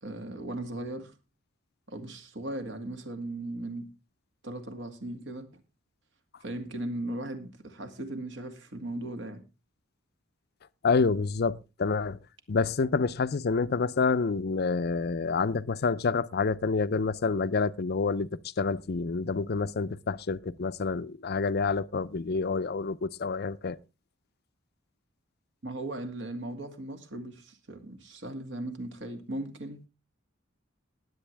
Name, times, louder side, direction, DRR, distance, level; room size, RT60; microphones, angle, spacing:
voice 1, 0.0-1.1 1.9-3.9 4.4-5.5 6.4-9.4 25.6-29.9, right 1 dB, 60° right, 2.3 m, -37 dB
voice 2, 10.8-12.2 12.5-18.3 18.6-23.8, left 4 dB, 50° left, 0.5 m, -28 dB
20.5 x 8.1 x 3.4 m
head